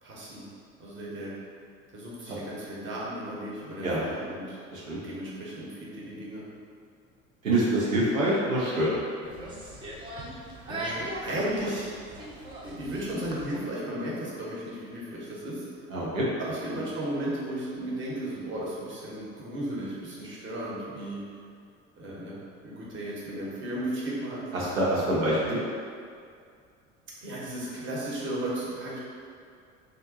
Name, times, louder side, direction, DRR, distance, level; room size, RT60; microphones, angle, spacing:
voice 1, 0.0-0.5 0.8-1.3 1.9-4.6 5.0-6.4 10.7-11.9 12.6-15.7 16.4-21.2 21.9-22.4 22.6-24.4 27.2-29.0, right 1 dB, 30° right, -6 dB, 0.9 m, -35 dB
voice 2, 7.4-9.0 15.9-16.3 24.5-25.6, right 1 dB, 85° right, -7 dB, 0.6 m, -26 dB
sound 1, 9.2-13.6, right 1 dB, 15° right, 0.3 m, -39 dB
2.6 x 2.1 x 3.8 m, 2.3 s
figure-of-eight pair, 70°, 39 cm